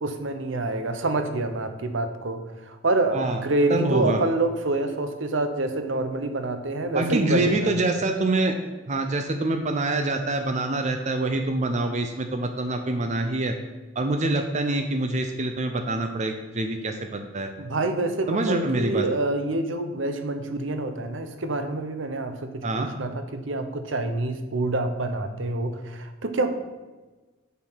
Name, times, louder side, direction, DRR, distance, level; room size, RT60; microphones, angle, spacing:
voice 1, 0.0-7.7 17.6-26.5, right 2 dB, 70° right, 8 dB, 0.9 m, -27 dB
voice 2, 3.7-4.2 6.9-8.5 8.9-13.5 14.0-17.5 18.3-19.0 22.6-22.9, right 2 dB, 35° right, 5 dB, 0.6 m, -25 dB
7.2 x 6.5 x 5.7 m, 1.2 s
head